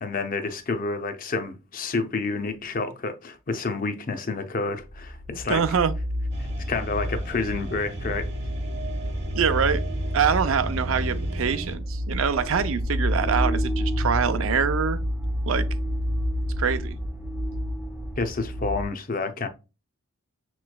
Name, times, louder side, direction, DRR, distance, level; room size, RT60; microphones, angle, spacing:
voice 1, 0.0-5.6 6.4-8.3 18.2-19.5, left 3 dB, 40° left, 0.5 m, -29 dB
sound 1, 4.9-18.8, equal, 10° right, 0.6 m, -29 dB
voice 2, 5.5-5.9 9.3-9.8 10.1-15.0 15.5-15.7 16.6-17.0, right 6 dB, 75° right, 0.5 m, -24 dB
sound 2, 6.3-11.8, right 2 dB, 55° right, 1.0 m, -34 dB
6.5 x 3.1 x 2.2 m
head